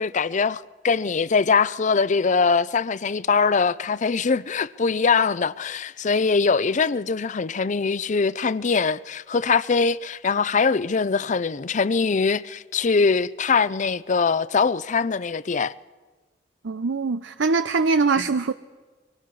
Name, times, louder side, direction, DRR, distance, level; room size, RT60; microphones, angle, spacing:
voice 1, 0.0-15.7 18.2-18.3, left 5 dB, 40° left, 0.5 m, -22 dB
voice 2, 16.6-18.5, right 4 dB, 85° right, 0.6 m, -22 dB
24.5 x 24.0 x 4.8 m
head